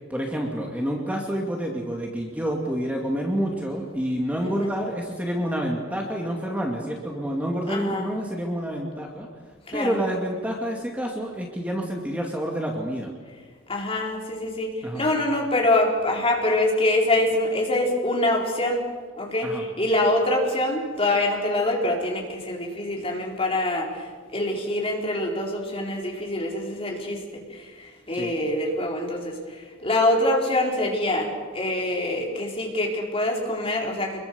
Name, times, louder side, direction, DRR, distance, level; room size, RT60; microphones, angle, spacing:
voice 1, 0.1-9.3 9.7-13.1 14.8-15.1 19.4-19.6 28.1-28.3, equal, 5° right, 0 dB, 2.4 m, -28 dB
voice 2, 4.4-4.7 7.7-8.1 9.7-9.9 13.7-18.8 19.2-24.0 24.3-27.2 27.8-29.4 29.8-34.2, left 1 dB, 30° left, 0 dB, 4.4 m, -25 dB
26.5 x 22.0 x 7.1 m, 1.5 s
head